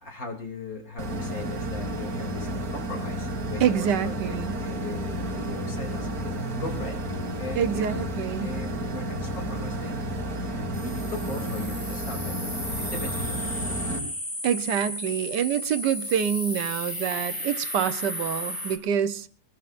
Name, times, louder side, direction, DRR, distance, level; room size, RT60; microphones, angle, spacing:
voice 1, 0.0-4.4 4.6-7.0 7.4-7.8 8.4-10.0 10.4-12.4 12.9-13.5 16.9-17.0, left 3 dB, 55° left, 3 dB, 3.4 m, -39 dB
sound 1, 1.0-14.0, right 1 dB, 60° right, 2.7 m, -31 dB
voice 2, 3.6-4.6 7.6-8.5 14.4-19.3, right 9 dB, 90° right, 12 dB, 1.6 m, -26 dB
sound 2, 10.7-18.8, left 1 dB, 10° left, 2.7 m, -34 dB
22.5 x 21.0 x 2.5 m, 0.35 s
omnidirectional pair, 1.8 m